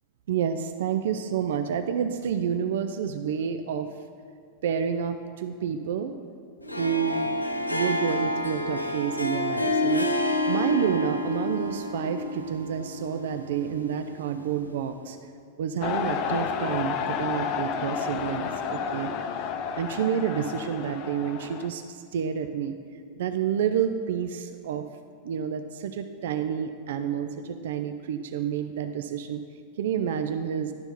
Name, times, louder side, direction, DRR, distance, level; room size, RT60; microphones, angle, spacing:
voice 1, 0.3-3.9 4.6-6.2 6.8-7.3 7.7-15.2 15.6-19.1 19.7-22.8 23.2-24.9 25.2-29.4 29.8-30.7, right 8 dB, 60° right, 8 dB, 0.3 m, -29 dB
Harp, 6.6-14.9, left 1 dB, 85° left, 0.6 m, -29 dB
sound 1, 15.8-21.7, left 7 dB, 40° left, 0.5 m, -31 dB
11.0 x 4.4 x 5.2 m, 2.3 s
figure-of-eight pair, 90°, 0 cm